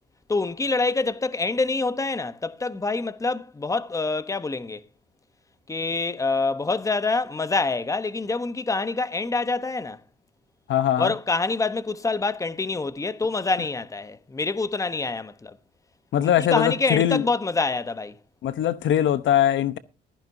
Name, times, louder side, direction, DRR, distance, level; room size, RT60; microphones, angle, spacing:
voice 1, 0.3-4.8 5.7-10.0 11.0-15.6 16.2-18.2, left 3 dB, 15° left, 0.9 m, -26 dB
voice 2, 10.7-11.1 16.1-17.2 18.4-19.8, left 11 dB, 70° left, 0.9 m, -21 dB
15.5 x 14.0 x 2.7 m
cardioid pair, 90°, 20 cm